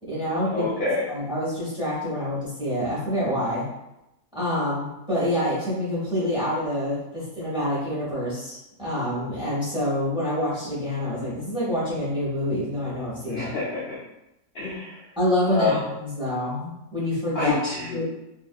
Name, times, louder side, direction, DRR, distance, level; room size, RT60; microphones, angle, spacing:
voice 1, 0.0-0.6 1.1-3.7 4.3-13.5 15.2-18.0, left 1 dB, 5° right, -9 dB, 0.7 m, -27 dB
voice 2, 0.5-1.0 13.3-14.0 14.5-15.0 15.4-15.8 17.3-18.0, left 3 dB, 90° left, -7 dB, 0.5 m, -27 dB
2.7 x 2.4 x 2.2 m, 0.92 s
omnidirectional pair, 1.7 m